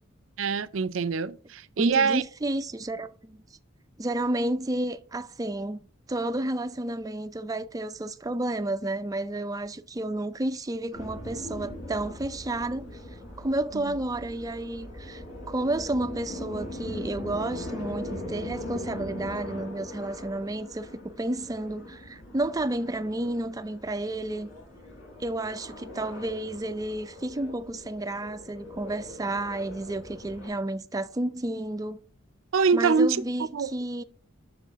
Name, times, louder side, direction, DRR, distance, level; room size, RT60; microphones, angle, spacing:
voice 1, 0.4-2.2 13.7-13.9 32.5-33.2 33.5-33.7, right 5 dB, 85° right, 0.5 m, -24 dB
voice 2, 1.8-3.4 4.0-5.8 6.1-12.9 13.4-24.5 25.2-32.0 32.7-34.0, right 1 dB, 20° right, 0.4 m, -31 dB
sound 1, 10.9-30.5, left 1 dB, 70° left, 4.0 m, -41 dB
7.4 x 6.5 x 3.5 m
head